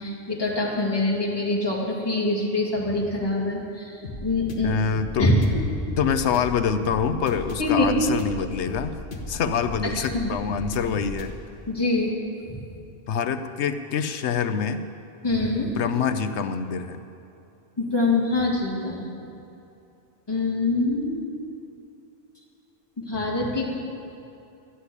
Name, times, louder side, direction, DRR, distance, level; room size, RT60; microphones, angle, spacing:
voice 1, 0.0-4.8 5.2-5.6 7.6-8.0 10.0-10.3 11.7-12.1 12.5-12.6 15.2-15.7 17.8-19.1 20.3-21.2 23.0-23.7, left 2 dB, 20° left, -4 dB, 2.3 m, -24 dB
sound 1, 4.0-11.3, left 1 dB, 55° left, 1.4 m, -36 dB
voice 2, 4.6-5.3 6.0-8.9 9.3-11.3 13.1-14.9 15.6-17.0, left 7 dB, 90° left, 10 dB, 1.0 m, -26 dB
12.5 x 8.1 x 8.5 m, 2.8 s
omnidirectional pair, 1.1 m